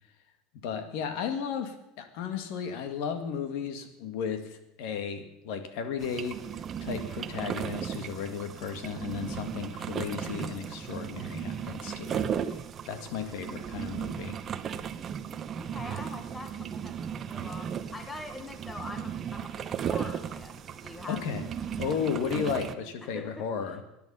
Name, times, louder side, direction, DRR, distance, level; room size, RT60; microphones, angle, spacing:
voice 1, 0.6-6.4 6.8-12.6 12.9-14.4 21.1-21.4 21.8-23.8, left 6 dB, 55° left, 8 dB, 1.9 m, -34 dB
sound 1, 6.0-22.7, right 8 dB, 25° right, 0.7 m, -36 dB
voice 2, 15.6-21.2 23.0-23.5, left 2 dB, 10° left, 7 dB, 0.9 m, -43 dB
20.0 x 10.5 x 5.6 m, 0.89 s
cardioid pair, 175°, 0 cm